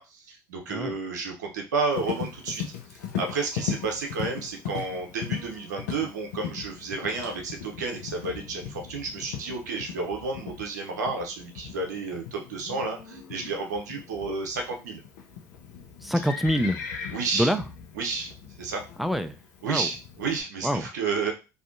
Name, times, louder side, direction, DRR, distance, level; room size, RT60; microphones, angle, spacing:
voice 1, 0.0-2.6 2.9-15.0 17.1-17.5 17.9-18.8 19.6-21.3, right 4 dB, 90° right, 2 dB, 0.6 m, -31 dB
Livestock farm animals working animals, 1.9-20.4, left 8 dB, 85° left, 0.5 m, -39 dB
voice 2, 16.0-16.8 17.3-17.6 19.0-19.4 19.6-19.9 20.6-20.9, equal, ahead, 8 dB, 0.3 m, -25 dB
2.5 x 2.4 x 2.5 m, 0.29 s
hypercardioid pair, 60°, 9 cm